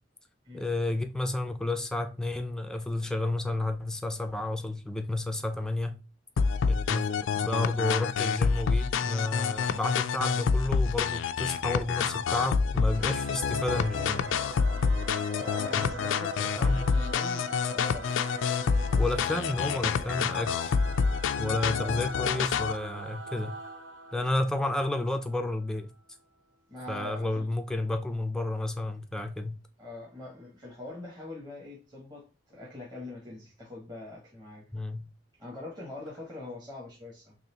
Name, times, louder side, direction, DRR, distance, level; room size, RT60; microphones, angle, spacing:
voice 1, 0.5-6.0 6.7-14.3 15.7-15.9 16.4-16.8 19.0-20.7 21.4-23.5 24.1-25.9 26.9-29.6 34.7-35.1, left 2 dB, 5° left, 0.4 m, -31 dB
sound 1, 6.4-22.8, left 5 dB, 90° left, 0.4 m, -28 dB
Singing / Musical instrument, 12.9-25.8, right 2 dB, 80° right, 0.9 m, -42 dB
voice 2, 15.3-18.1 21.7-22.0 26.7-27.4 29.8-34.6 35.4-37.4, left 2 dB, 20° right, 1.2 m, -43 dB
4.0 x 3.0 x 2.8 m
head